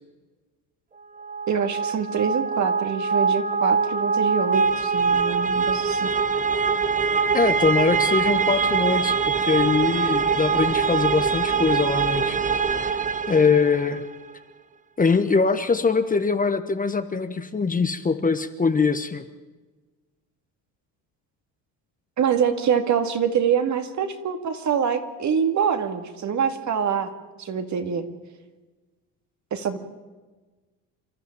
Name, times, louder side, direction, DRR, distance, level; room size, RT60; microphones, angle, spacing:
sound 1, 1.2-14.0, right 5 dB, 20° right, 0.9 m, -23 dB
voice 1, 1.5-6.1 22.2-27.1 27.4-28.1 29.5-29.8, right 7 dB, 45° right, 7 dB, 2.4 m, -25 dB
voice 2, 7.3-12.4 12.9-13.0 13.3-14.0 15.0-19.2, left 4 dB, 20° left, 9 dB, 1.2 m, -22 dB
28.0 x 12.5 x 8.8 m, 1.3 s
cardioid pair, 100°, 39 cm